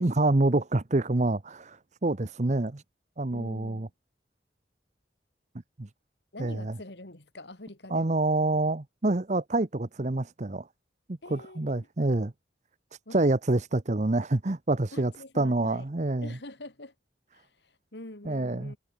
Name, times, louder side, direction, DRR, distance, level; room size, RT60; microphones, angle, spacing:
voice 1, 0.0-2.8 3.2-3.9 5.8-5.9 6.4-6.7 7.9-10.7 11.3-12.3 13.1-16.4 18.2-18.7, right 2 dB, 40° right, 0.9 m, -27 dB
voice 2, 3.3-3.9 6.3-8.1 11.2-11.9 13.1-13.2 14.9-15.8 16.2-16.9 17.3-18.8, left 1 dB, 65° left, 3.0 m, -45 dB
head